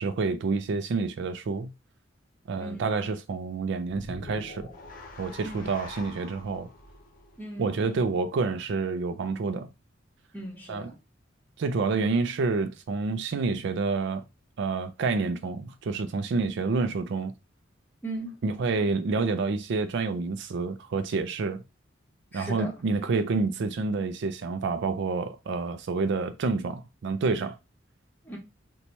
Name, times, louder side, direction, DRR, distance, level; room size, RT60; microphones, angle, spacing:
voice 1, 0.0-1.7 2.5-4.7 5.2-6.7 7.6-9.7 10.7-10.9 11.6-14.2 14.6-17.3 18.4-21.6 22.3-27.6, right 4 dB, 65° right, 0.4 m, -28 dB
voice 2, 2.6-2.9 5.4-5.7 7.4-7.7 10.3-11.0 18.0-18.4 22.3-22.8 28.2-28.4, right 1 dB, 10° left, 1.1 m, -38 dB
sound 1, 3.8-8.2, left 2 dB, 45° left, 0.6 m, -45 dB
2.9 x 2.2 x 3.9 m
head